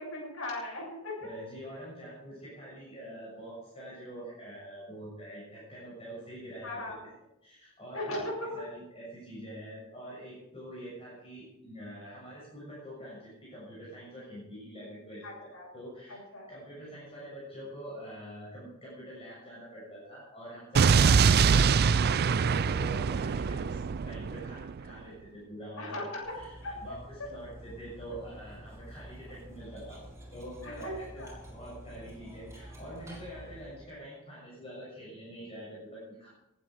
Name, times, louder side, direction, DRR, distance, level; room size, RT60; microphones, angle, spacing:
voice 1, 0.0-1.3 6.6-7.0 7.9-8.5 15.2-15.7 16.1-16.5 20.7-21.1 25.8-27.3 30.6-31.4, left 1 dB, 70° left, -3 dB, 7.7 m, -38 dB
voice 2, 1.2-7.0 7.4-16.2 16.5-26.6 26.8-30.0 30.3-36.3, right 1 dB, 30° left, -6 dB, 6.8 m, -45 dB
Explosion, 20.7-24.8, right 5 dB, 50° right, 0.4 m, -24 dB
Cutlery silverware, 26.2-33.9, equal, 15° right, 7.1 m, -48 dB
21.5 x 11.5 x 5.1 m, 0.89 s
head